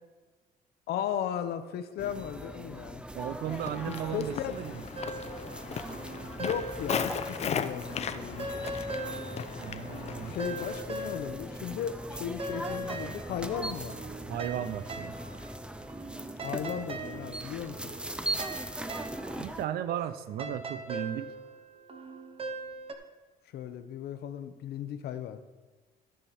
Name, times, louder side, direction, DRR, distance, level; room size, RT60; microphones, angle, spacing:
voice 1, 0.9-3.0 3.9-4.6 6.4-8.6 10.2-14.0 16.4-17.9 23.5-25.4, left 9 dB, 70° left, 10 dB, 0.9 m, -36 dB
sound 1, 2.0-19.6, right 1 dB, 5° right, 0.6 m, -40 dB
voice 2, 3.1-4.8 9.6-10.4 14.3-15.1 19.4-21.3, right 10 dB, 70° right, 14 dB, 0.7 m, -35 dB
Walk footsteps, 3.4-10.8, left 7 dB, 40° left, 0.6 m, -37 dB
sound 2, 5.0-7.6 7.9-11.6 11.9-22.9, right 2 dB, 35° right, 1.1 m, -41 dB
13.5 x 6.6 x 4.3 m, 1.3 s
cardioid pair, 110°, 17 cm